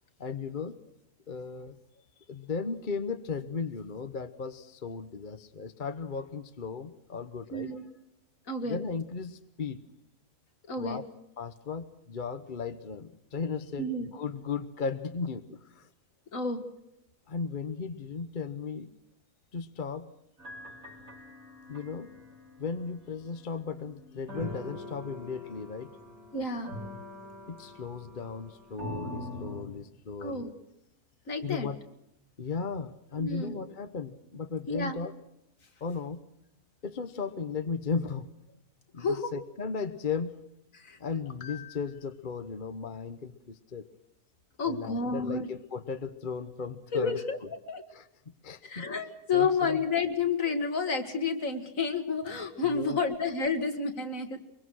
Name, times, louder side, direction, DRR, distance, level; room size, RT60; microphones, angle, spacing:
voice 1, 0.2-0.8 1.3-1.8 2.3-7.7 8.6-9.8 10.8-11.0 11.4-15.9 17.3-18.9 19.5-20.1 21.7-22.1 22.6-25.9 27.5-30.4 31.4-31.8 32.4-35.1 35.8-36.2 36.8-38.3 38.9-39.1 39.3-40.4 41.0-43.8 44.6-47.2 47.9-48.1 48.4-48.8 49.3-49.8 52.6-53.1, left 5 dB, 35° left, 9 dB, 1.1 m, -36 dB
voice 2, 7.5-7.8 8.5-8.8 10.7-11.0 13.8-14.1 16.3-16.6 26.3-26.8 30.2-30.5 31.3-31.7 33.2-33.6 34.7-35.0 39.0-39.3 40.7-41.0 44.6-45.5 46.9-47.4 47.7-47.8 48.6-54.4, left 4 dB, 60° left, 7 dB, 2.4 m, -30 dB
sound 1, 20.4-29.6, left 1 dB, 65° right, 4.8 m, -43 dB
23.5 x 23.5 x 6.4 m, 0.83 s
omnidirectional pair, 1.6 m